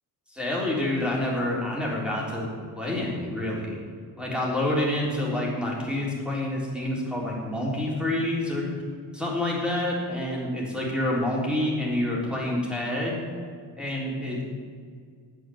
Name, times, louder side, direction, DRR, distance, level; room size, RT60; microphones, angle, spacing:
voice 1, 0.4-2.5 2.8-3.8 4.2-8.7 9.1-13.2 13.8-14.4, left 1 dB, ahead, -4 dB, 3.7 m, -27 dB
9.3 x 9.1 x 9.3 m, 2.1 s
cardioid pair, 140°, 42 cm